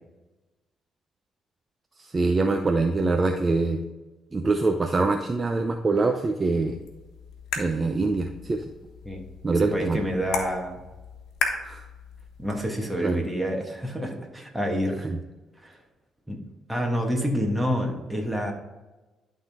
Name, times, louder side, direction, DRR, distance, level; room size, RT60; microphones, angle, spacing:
voice 1, 2.0-3.8 4.3-6.8 7.6-8.6 9.4-10.0 11.6-11.8 13.0-13.2 15.0-15.2, right 3 dB, 30° right, 4 dB, 0.6 m, -24 dB
sound 1, 6.6-12.6, left 4 dB, 80° left, 1.2 m, -36 dB
voice 2, 9.0-10.8 12.4-15.1 16.3-16.4 16.7-18.5, equal, 10° right, 1 dB, 1.6 m, -28 dB
11.5 x 3.8 x 3.6 m, 1.1 s
cardioid pair, 90°, 0 cm